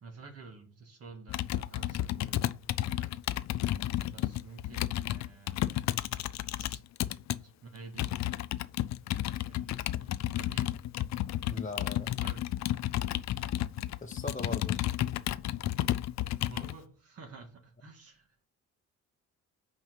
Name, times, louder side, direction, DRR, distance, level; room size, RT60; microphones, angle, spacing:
voice 1, 0.0-3.1 4.1-5.6 6.6-6.8 7.4-8.1 9.5-10.8 11.7-12.5 16.5-18.3, right 4 dB, 50° right, 1.9 m, -50 dB
Computer keyboard, 1.3-7.4 8.0-16.7, left 13 dB, 65° left, 0.5 m, -32 dB
voice 2, 11.5-12.1 14.0-14.8, left 3 dB, 25° left, 0.9 m, -39 dB
5.7 x 4.5 x 5.5 m
cardioid pair, 90°, 30 cm